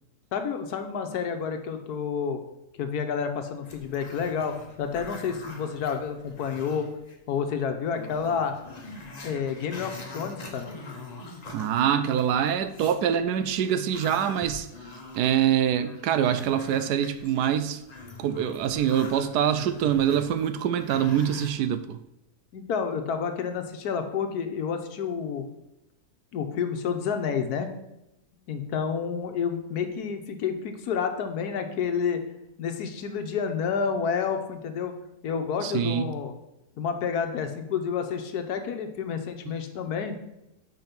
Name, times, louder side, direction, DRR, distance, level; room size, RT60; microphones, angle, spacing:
voice 1, 0.3-2.4 2.8-6.9 7.3-8.6 9.2-10.7 22.5-25.5 26.3-27.7 28.5-32.2 32.6-34.9 35.2-36.3 36.8-40.2, left 6 dB, 75° left, 1.3 m, -29 dB
Growling, 3.6-7.1 7.5-7.6 7.9-13.0 13.4-21.5, left 3 dB, 30° left, 1.0 m, -43 dB
voice 2, 11.5-14.7 15.1-17.8 18.2-22.0 35.6-36.1, right 9 dB, 85° right, 1.2 m, -25 dB
5.3 x 5.2 x 5.8 m
omnidirectional pair, 1.7 m